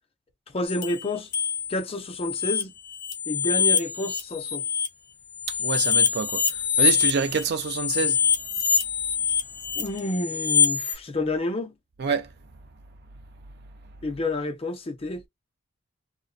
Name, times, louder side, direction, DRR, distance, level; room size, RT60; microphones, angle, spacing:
voice 1, 0.5-1.3 1.7-2.7 3.3-4.6 9.8-11.7 14.0-15.2, left 2 dB, 25° left, 0.4 m, -29 dB
sound 1, 0.7-1.8 2.1-4.9 5.4-10.9, left 7 dB, 50° left, 1.1 m, -25 dB
voice 2, 5.5-8.2 12.0-12.3, right 5 dB, 50° right, 0.4 m, -27 dB
2.5 x 2.1 x 2.3 m
head